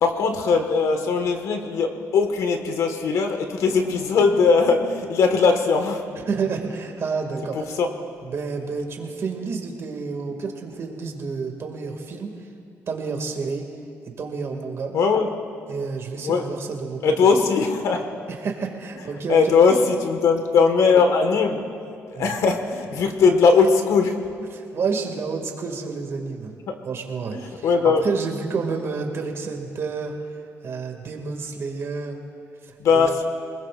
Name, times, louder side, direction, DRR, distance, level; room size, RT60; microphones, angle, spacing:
voice 1, 0.0-6.0 7.5-7.9 14.9-15.3 16.2-16.4 17.0-18.1 19.3-21.6 22.1-24.2 26.7-26.8 27.6-28.0 32.8-33.2, left 5 dB, 80° left, 5 dB, 1.6 m, -19 dB
voice 2, 6.3-7.6 8.2-12.3 12.9-13.6 14.2-14.9 15.7-17.1 18.3-19.5 22.2-22.4 24.5-26.6 26.8-30.1 30.6-32.2 32.9-33.2, right 4 dB, 55° right, 2 dB, 2.3 m, -29 dB
26.5 x 20.0 x 2.5 m, 2.4 s
cardioid pair, 105°, 6 cm